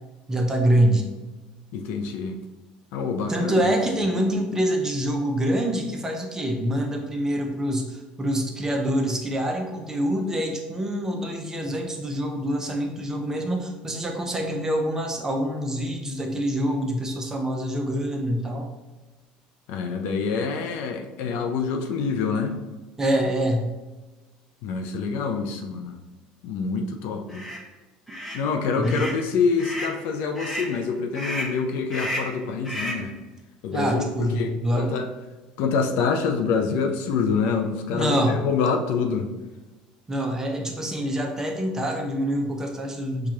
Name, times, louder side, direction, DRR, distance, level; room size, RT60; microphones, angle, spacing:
voice 1, 0.3-1.1 3.3-18.7 23.0-23.7 28.8-29.1 33.7-35.0 37.9-38.4 40.1-43.3, right 1 dB, 15° right, 2 dB, 0.7 m, -25 dB
voice 2, 1.7-2.4 2.9-3.7 19.7-22.6 24.6-26.0 26.4-27.4 28.3-33.1 33.6-35.1 35.6-39.3, left 5 dB, 70° left, 5 dB, 0.5 m, -26 dB
sound 1, 27.3-27.6 28.1-28.4 28.8-29.2 29.6-30.0 30.3-30.7 31.1-31.6 31.9-32.4 32.6-33.1, equal, 10° left, 1.0 m, -32 dB
4.7 x 2.4 x 2.8 m, 1.2 s
supercardioid pair, 95°, 3 cm